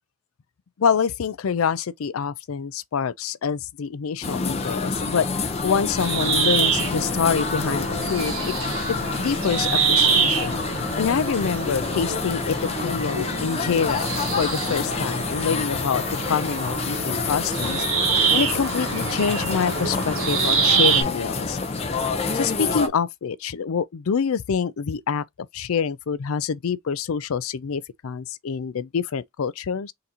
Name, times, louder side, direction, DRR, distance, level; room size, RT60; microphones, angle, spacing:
voice 1, 0.8-8.6 9.2-10.6 11.0-12.6 12.8-17.9 18.3-21.6 22.3-29.9, left 6 dB, 85° left, 0.4 m, -26 dB
sound 1, 4.2-22.9, left 4 dB, 30° left, 0.6 m, -28 dB
sound 2, 6.0-21.0, right 6 dB, 75° right, 1.6 m, -26 dB
3.9 x 2.8 x 4.0 m
head